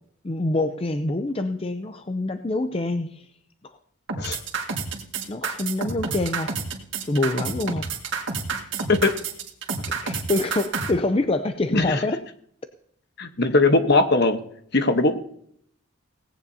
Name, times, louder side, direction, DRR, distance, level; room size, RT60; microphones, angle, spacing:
voice 1, 0.2-3.3 5.3-6.5 7.1-7.9 10.0-12.2, left 2 dB, 25° left, 8 dB, 0.5 m, -25 dB
sound 1, 4.1-10.9, right 5 dB, 55° right, 2.0 m, -29 dB
voice 2, 11.7-12.0 13.2-14.4 14.7-15.2, left 2 dB, 50° left, 8 dB, 1.1 m, -20 dB
18.0 x 16.5 x 2.8 m, 0.67 s
head